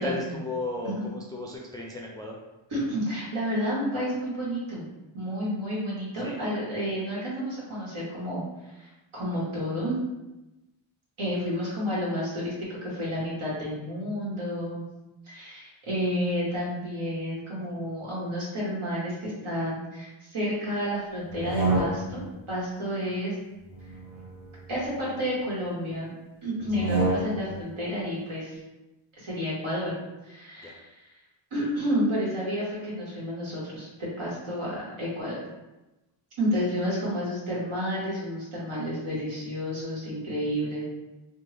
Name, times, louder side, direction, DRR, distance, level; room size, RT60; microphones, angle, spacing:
voice 1, 0.0-2.4 6.2-6.4 17.7-17.8 22.9-23.2 30.6-30.8 36.5-36.6, left 1 dB, 10° left, -2 dB, 0.3 m, -35 dB
voice 2, 2.7-4.9 5.1-10.0 11.2-14.9 15.3-23.3 24.7-26.1 26.4-28.6 29.2-30.0 30.2-30.9 31.5-33.9 34.2-35.4 36.4-40.8, equal, 75° right, -6 dB, 1.5 m, -30 dB
sound 1, 21.3-22.4 23.6-25.3 26.6-27.6, right 2 dB, 50° right, 1.1 m, -30 dB
3.4 x 2.2 x 3.3 m, 1.0 s
wide cardioid pair, 90°, 50 cm